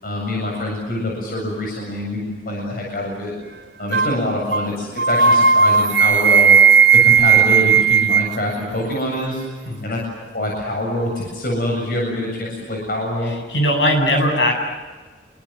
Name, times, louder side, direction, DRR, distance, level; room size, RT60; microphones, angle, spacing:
voice 1, 0.0-3.3 3.8-6.6 6.9-9.4 9.8-10.0 10.3-13.3, left 1 dB, 55° left, -1 dB, 7.8 m, -25 dB
sound 1, 3.9-4.2 4.5-4.7 5.0-8.4, right 6 dB, 70° right, 0.8 m, -14 dB
voice 2, 13.5-14.5, equal, 80° left, 4 dB, 7.8 m, -18 dB
28.5 x 24.0 x 7.6 m, 1.3 s
head